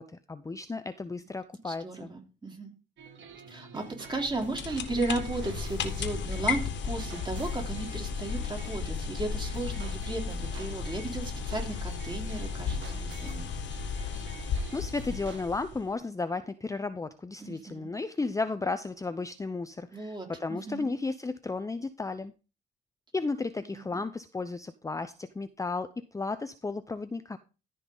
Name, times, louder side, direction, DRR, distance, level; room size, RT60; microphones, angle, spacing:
voice 1, 0.0-2.1 14.4-22.3 23.1-27.4, left 3 dB, 15° left, 12 dB, 0.6 m, -34 dB
voice 2, 1.6-2.7 3.5-13.6 17.4-17.9 19.9-20.9 23.6-24.0, right 2 dB, 25° right, 2 dB, 3.4 m, -35 dB
sound 1, 3.0-15.4, right 5 dB, 70° right, 2.3 m, -48 dB
sound 2, 4.1-15.9, left 5 dB, 65° left, 1.6 m, -34 dB
14.0 x 5.4 x 3.9 m, 0.32 s
cardioid pair, 90°, 20 cm